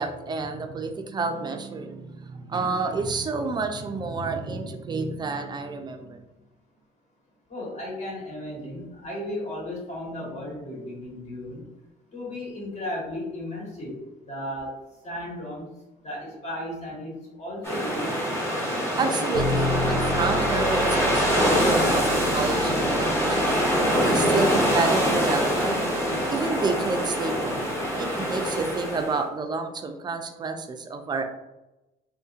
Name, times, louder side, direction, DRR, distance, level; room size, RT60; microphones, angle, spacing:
voice 1, 0.0-6.3 19.0-23.6 24.0-25.8 26.3-27.6 28.0-31.2, right 3 dB, 25° right, 6 dB, 0.4 m, -29 dB
voice 2, 7.5-11.6 12.1-14.0 14.3-14.8 15.0-15.7 16.0-18.1, left 1 dB, 40° left, -4 dB, 1.4 m, -35 dB
sound 1, 17.6-29.2, equal, 15° left, 1.2 m, -24 dB
sound 2, 19.3-29.1, left 2 dB, 80° left, 0.6 m, -35 dB
3.6 x 2.6 x 2.4 m, 0.97 s
cardioid pair, 110°, 17 cm